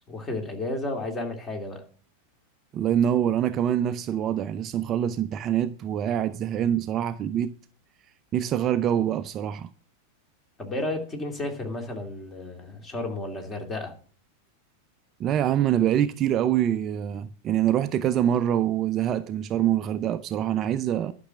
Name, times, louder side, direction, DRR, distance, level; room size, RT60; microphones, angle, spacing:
voice 1, 0.1-1.8 10.6-13.9, left 2 dB, 20° left, 2.6 m, -32 dB
voice 2, 2.7-7.5 8.3-9.7 15.2-21.1, right 10 dB, 30° right, 0.5 m, -25 dB
11.5 x 6.2 x 7.0 m
figure-of-eight pair, 90°, 0 cm